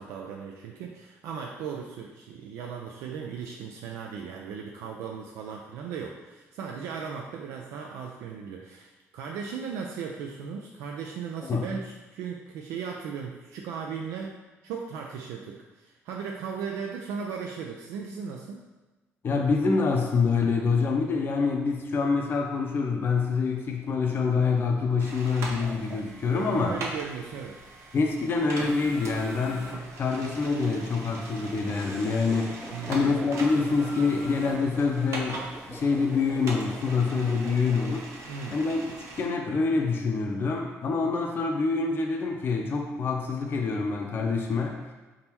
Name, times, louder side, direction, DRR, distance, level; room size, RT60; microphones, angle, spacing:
voice 1, 0.0-18.6 26.3-27.6 32.7-33.1 38.3-38.6, right 6 dB, 90° right, 0 dB, 0.4 m, -37 dB
voice 2, 19.2-26.8 27.9-38.1 38.5-44.9, left 4 dB, 45° left, 2 dB, 0.5 m, -26 dB
sound 1, 25.0-39.3, right 2 dB, 65° right, 0.7 m, -40 dB
sound 2, 31.7-38.0, right 1 dB, 10° right, 0.4 m, -45 dB
4.0 x 3.7 x 2.9 m, 1.2 s
cardioid pair, 95°, 5 cm